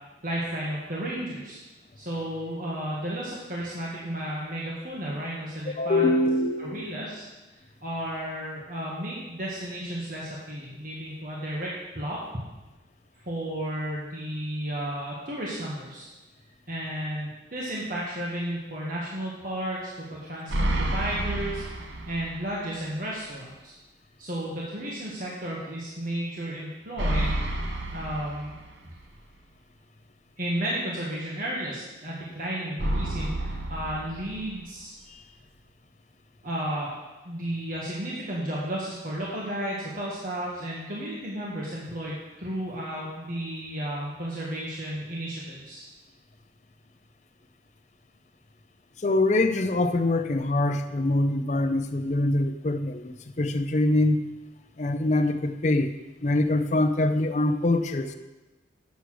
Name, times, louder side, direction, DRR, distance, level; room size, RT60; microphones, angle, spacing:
voice 1, 0.2-1.6 2.0-6.2 6.6-7.2 7.8-12.2 13.2-16.1 16.7-23.7 24.2-27.4 27.9-28.6 30.4-34.9 36.4-36.9 37.2-45.8, right 1 dB, 45° right, -5 dB, 1.6 m, -33 dB
voice 2, 5.8-7.0 49.0-54.2 54.8-55.9 56.2-58.1, left 2 dB, 40° left, 7 dB, 0.6 m, -24 dB
sound 1, 20.5-22.5 22.9-23.0 27.0-29.0 32.8-34.8, right 1 dB, 75° right, 1.0 m, -30 dB
8.2 x 6.6 x 6.2 m, 1.1 s
head